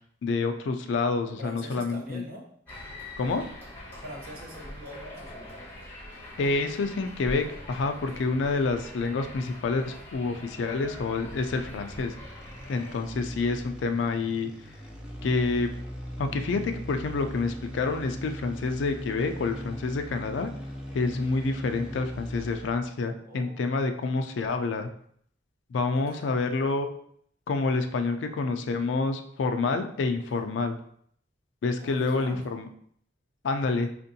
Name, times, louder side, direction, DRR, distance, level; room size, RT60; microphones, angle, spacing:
voice 1, 0.2-2.2 3.2-3.4 6.4-12.1 12.7-14.5 15.2-15.7 16.2-20.5 20.9-24.9 25.7-26.9 27.5-30.8 31.6-32.7 33.4-33.9, left 3 dB, 75° left, 6 dB, 0.4 m, -28 dB
voice 2, 1.4-2.4 4.0-5.5 7.9-8.2 23.3-23.6 25.9-26.3 30.2-30.4 31.8-32.4, equal, 55° right, 0 dB, 0.8 m, -44 dB
sound 1, 2.7-12.9, left 1 dB, 10° left, 1.3 m, -43 dB
sound 2, 10.8-22.9, equal, 5° right, 0.5 m, -40 dB
4.3 x 2.5 x 2.7 m, 0.65 s
head